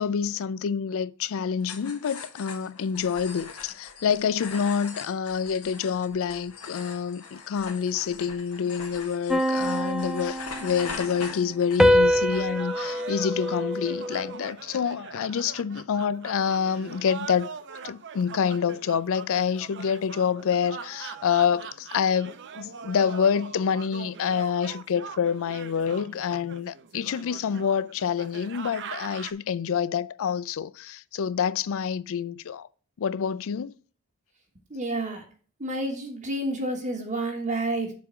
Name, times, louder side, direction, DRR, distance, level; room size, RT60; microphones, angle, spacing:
voice 1, 0.0-17.5 17.8-32.7 33.0-33.7, left 7 dB, 65° left, 0.4 m, -27 dB
sound 1, 1.6-12.2, left 5 dB, 85° left, 1.7 m, -42 dB
sound 2, 9.3-11.1 11.8-14.4, equal, ahead, 0.4 m, -25 dB
sound 3, 12.0-29.3, right 6 dB, 55° right, 0.7 m, -42 dB
voice 2, 34.7-35.2 35.6-37.9, right 1 dB, 35° right, 1.2 m, -29 dB
7.5 x 3.7 x 6.0 m
head